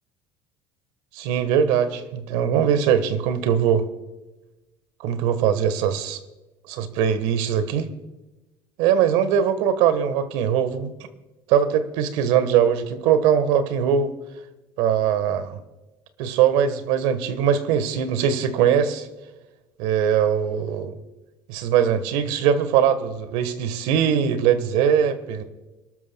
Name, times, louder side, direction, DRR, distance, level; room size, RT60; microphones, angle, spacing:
voice 1, 1.1-3.8 5.0-6.2 6.7-7.9 8.8-10.9 11.5-14.1 14.8-15.6 16.2-19.1 19.8-20.9 21.5-25.4, right 8 dB, 80° right, 1.4 m, -21 dB
28.0 x 12.5 x 2.3 m
cardioid pair, 125°, 10 cm